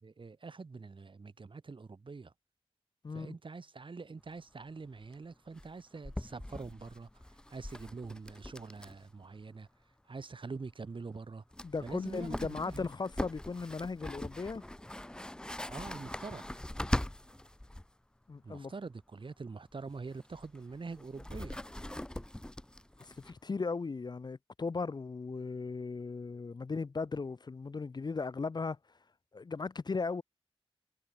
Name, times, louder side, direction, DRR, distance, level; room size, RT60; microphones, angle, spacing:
voice 1, 0.0-2.3 3.1-7.2 7.5-9.7 10.1-11.4 11.8-12.9 15.7-16.6 18.4-21.6, right 4 dB, 55° right, 4.5 m, -45 dB
voice 2, 3.0-3.4 11.6-14.6 18.3-18.7 23.0-28.8 29.3-30.2, left 4 dB, 45° left, 0.7 m, -37 dB
sound 1, 4.3-4.4 4.6-4.7 5.0-5.1 5.6-9.1 9.4-9.5 11.1-11.2 11.5-17.9 19.7-23.4, left 1 dB, 10° left, 0.5 m, -41 dB
wide cardioid pair, 75°, 10 cm